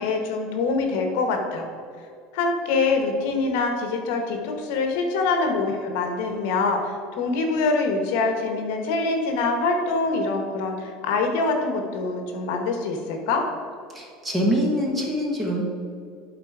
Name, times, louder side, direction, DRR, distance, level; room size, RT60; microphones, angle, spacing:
voice 1, 0.0-1.6 2.3-13.4, left 3 dB, 65° left, 4 dB, 1.1 m, -24 dB
voice 2, 13.9-15.6, equal, 10° right, -1 dB, 1.0 m, -24 dB
11.5 x 4.0 x 4.8 m, 2.3 s
cardioid pair, 175°, 0 cm